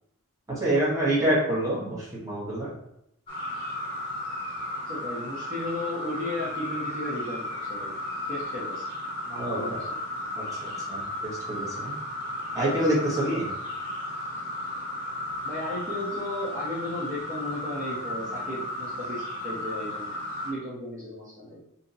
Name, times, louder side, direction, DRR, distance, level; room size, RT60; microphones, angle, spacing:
voice 1, 0.6-2.7 9.4-9.8 10.4-11.9 12.5-13.5, right 1 dB, 15° right, -7 dB, 1.2 m, -27 dB
sound 1, 3.3-20.5, left 1 dB, 25° left, 0.9 m, -34 dB
voice 2, 4.9-7.9 8.3-8.8 9.2-10.0 15.4-20.1 20.4-21.6, left 1 dB, 35° right, -7 dB, 0.7 m, -35 dB
2.8 x 2.7 x 3.8 m, 0.78 s
head